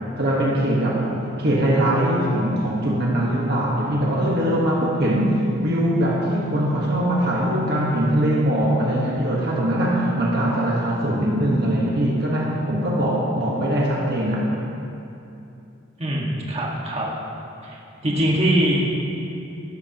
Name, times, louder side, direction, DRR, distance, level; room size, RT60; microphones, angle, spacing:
voice 1, 0.2-1.0 1.4-14.5, right 1 dB, 50° right, -4 dB, 1.4 m, -21 dB
voice 2, 16.0-17.1 17.6-17.8 18.0-18.9, right 1 dB, 30° right, -4 dB, 1.7 m, -22 dB
16.0 x 12.0 x 3.0 m, 2.8 s
head